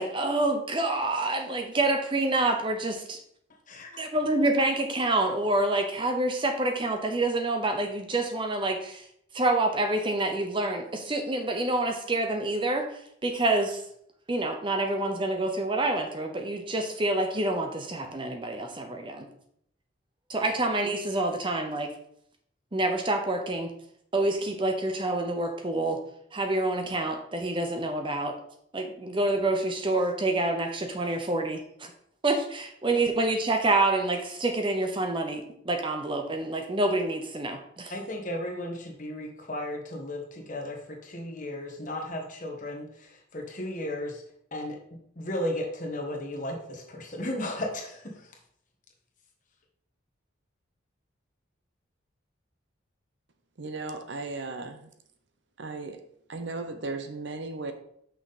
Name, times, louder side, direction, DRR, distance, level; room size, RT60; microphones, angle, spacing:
voice 1, 0.0-3.2 4.0-9.1 9.3-13.8 14.3-19.3 20.3-21.9 22.7-23.7 24.1-26.0 26.3-28.4 28.7-31.9 32.2-37.9, right 2 dB, 25° right, 0.7 m, -27 dB
voice 2, 37.9-44.2 44.5-48.3, left 1 dB, 40° left, 1.3 m, -35 dB
voice 3, 53.6-54.9 55.6-56.0 56.3-57.7, right 3 dB, 60° right, 0.7 m, -36 dB
6.0 x 5.7 x 4.1 m
head